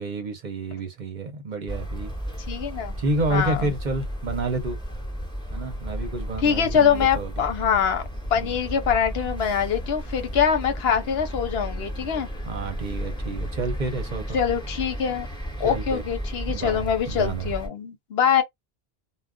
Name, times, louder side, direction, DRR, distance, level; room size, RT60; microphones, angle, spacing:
voice 1, 0.0-2.1 3.0-4.8 5.5-7.3 8.4-8.6 12.5-14.4 15.6-16.0 16.5-17.5, right 2 dB, 50° right, 0.7 m, -30 dB
sound 1, 1.7-17.7, equal, 5° left, 1.1 m, -33 dB
voice 2, 2.5-3.0 3.3-3.7 6.4-8.0 8.3-12.3 14.3-15.3 15.6-18.4, left 7 dB, 70° left, 0.9 m, -24 dB
2.4 x 2.1 x 3.5 m
omnidirectional pair, 1.1 m